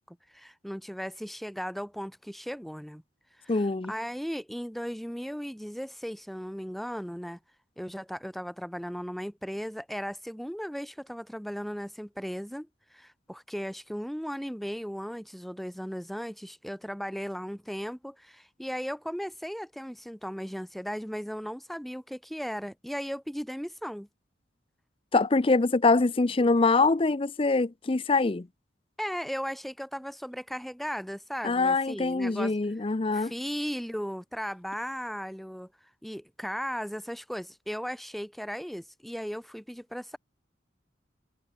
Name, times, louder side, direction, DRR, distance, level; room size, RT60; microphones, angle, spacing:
voice 1, 0.0-3.0 3.4-7.4 7.8-24.1 29.0-32.5 33.1-35.7 36.0-40.2, equal, ahead, 3.0 m, -36 dB
voice 2, 3.5-3.9 25.1-28.5 31.4-33.3, left 3 dB, 30° left, 0.5 m, -24 dB
head